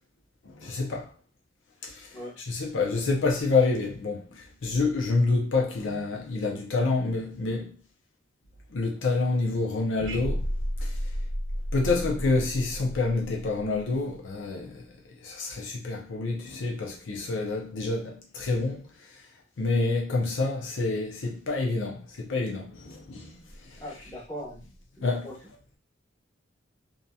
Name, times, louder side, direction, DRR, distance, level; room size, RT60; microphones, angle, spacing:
voice 1, 0.4-1.1 1.8-2.1 2.5-7.7 8.7-10.4 10.8-10.9 11.7-14.8 15.2-18.9 19.6-23.4 23.7-23.8 25.0-25.3, left 3 dB, 80° left, 0.6 m, -28 dB
sound 1, 10.0-14.1, equal, 90° right, 0.6 m, -32 dB
voice 2, 23.8-24.6 25.0-25.4, equal, 15° left, 1.0 m, -39 dB
2.7 x 2.7 x 2.2 m
head